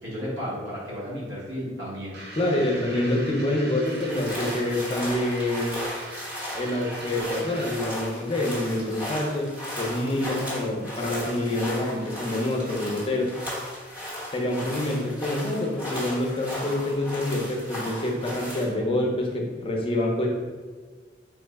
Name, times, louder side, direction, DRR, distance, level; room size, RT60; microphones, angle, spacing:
voice 1, 0.0-2.2 2.7-3.2, equal, 85° right, -6 dB, 1.2 m, -33 dB
sound 1, 2.1-7.9, right 2 dB, 60° right, 0.5 m, -41 dB
voice 2, 2.4-5.8 6.5-9.5 9.8-13.3 14.3-20.3, left 1 dB, 30° left, 0 dB, 0.5 m, -26 dB
sound 2, 3.8-18.7, equal, 10° right, 0.9 m, -36 dB
3.4 x 2.1 x 3.3 m, 1.5 s
head